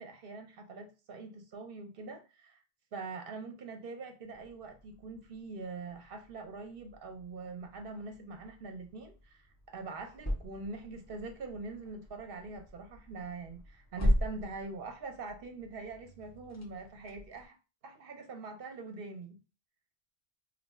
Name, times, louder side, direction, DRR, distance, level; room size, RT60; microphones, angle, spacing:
voice 1, 0.0-2.6 2.9-17.6 17.8-19.4, right 3 dB, 65° right, 5 dB, 0.8 m, -43 dB
sound 1, 4.2-17.5, equal, 20° left, 0.5 m, -39 dB
2.8 x 2.2 x 4.1 m, 0.32 s
omnidirectional pair, 1.1 m